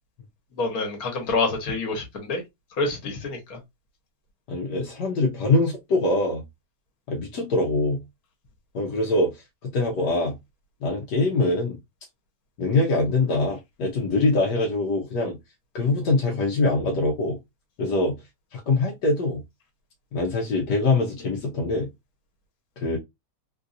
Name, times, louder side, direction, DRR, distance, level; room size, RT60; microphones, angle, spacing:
voice 1, 0.5-2.4 2.8-3.6, left 3 dB, 60° left, 1.7 m, -27 dB
voice 2, 4.5-6.4 7.1-8.0 8.7-9.3 9.6-10.3 10.8-11.8 12.6-15.4 15.7-17.4 17.8-18.2 18.5-19.4 20.1-21.9 22.8-23.0, left 2 dB, 80° left, 1.4 m, -23 dB
3.7 x 2.6 x 2.5 m
omnidirectional pair, 1.8 m